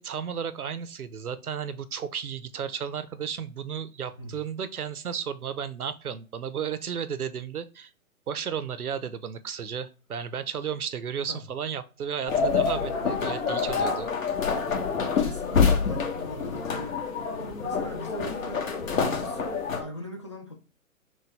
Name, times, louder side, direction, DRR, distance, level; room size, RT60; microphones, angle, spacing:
voice 1, 0.0-7.9 8.3-14.1, right 7 dB, 85° right, 13 dB, 0.7 m, -33 dB
sound 1, 12.3-19.8, left 5 dB, 65° left, 1.2 m, -27 dB
voice 2, 14.8-20.5, equal, 20° left, 1 dB, 0.4 m, -41 dB
6.1 x 2.2 x 3.3 m, 0.34 s
figure-of-eight pair, 130°, 43 cm